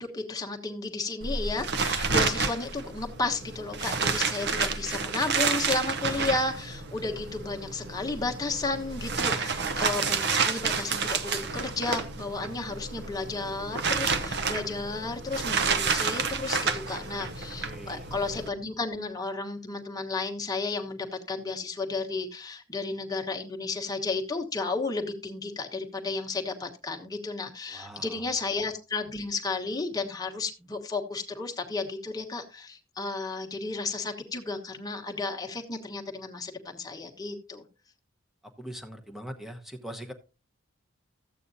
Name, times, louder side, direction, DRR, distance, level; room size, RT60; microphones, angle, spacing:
voice 1, 0.0-37.6, left 3 dB, 20° left, 1.2 m, -33 dB
sound 1, 1.2-18.5, right 5 dB, 50° right, 0.8 m, -30 dB
voice 2, 17.6-18.1 27.7-28.3 38.6-40.1, equal, ahead, 1.0 m, -42 dB
14.0 x 8.4 x 2.7 m
head